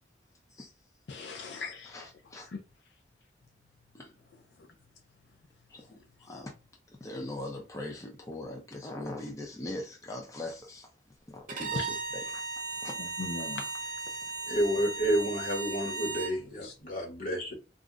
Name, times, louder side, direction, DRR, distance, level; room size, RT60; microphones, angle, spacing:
voice 1, 1.1-2.0 2.4-2.6 11.8-11.9 13.0-13.7 16.5-16.7, left 4 dB, 75° left, 0.5 m, -39 dB
voice 2, 1.8-2.5 3.9-4.1 5.7-6.5 7.0-10.9 11.3-12.4 12.8-13.0, left 1 dB, 20° left, 0.5 m, -41 dB
Bowed string instrument, 11.5-16.4, right 4 dB, 50° right, 0.6 m, -36 dB
voice 3, 14.5-17.5, equal, 50° left, 1.3 m, -30 dB
2.5 x 2.1 x 3.6 m
head